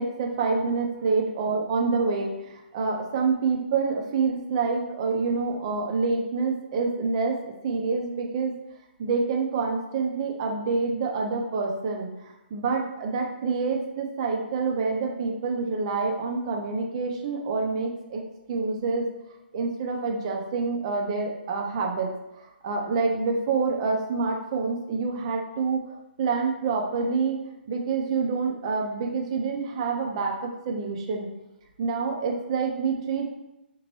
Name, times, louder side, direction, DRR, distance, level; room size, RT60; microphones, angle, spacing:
voice 1, 0.0-8.5 9.0-18.2 18.5-19.1 19.5-25.8 26.2-27.4 27.7-31.3 31.8-33.3, right 4 dB, 35° right, 1 dB, 0.4 m, -27 dB
2.9 x 2.2 x 2.9 m, 0.93 s
figure-of-eight pair, 130°, 6 cm